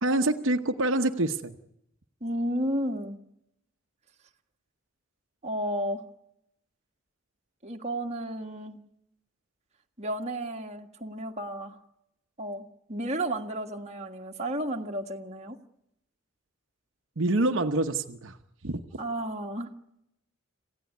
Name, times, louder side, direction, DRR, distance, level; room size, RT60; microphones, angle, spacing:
voice 1, 0.0-1.5 17.2-18.4 18.6-18.8, right 2 dB, 70° right, 5 dB, 1.0 m, -26 dB
voice 2, 2.2-3.2 5.4-6.0 7.6-8.8 10.0-11.8 12.4-15.6 19.0-19.7, right 1 dB, 35° right, 3 dB, 1.7 m, -32 dB
27.5 x 16.0 x 9.5 m, 0.83 s
head